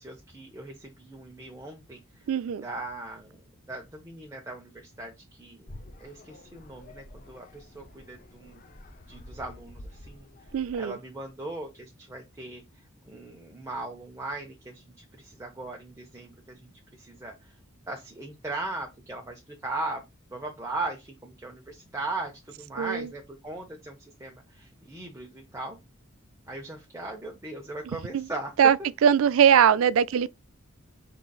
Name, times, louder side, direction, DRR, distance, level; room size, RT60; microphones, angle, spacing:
voice 1, 0.0-2.0 2.6-5.7 6.0-8.6 9.1-10.3 10.7-12.6 13.0-17.5 17.9-20.0 20.3-25.8 26.5-28.5 30.1-30.3, right 2 dB, 15° right, 0.7 m, -38 dB
voice 2, 2.3-2.6 10.5-11.0 22.8-23.1 27.9-28.3 28.6-28.8 29.0-30.3, right 8 dB, 70° right, 0.3 m, -21 dB
sound 1, 5.7-10.9, left 1 dB, 40° left, 0.6 m, -49 dB
5.6 x 3.8 x 2.3 m
head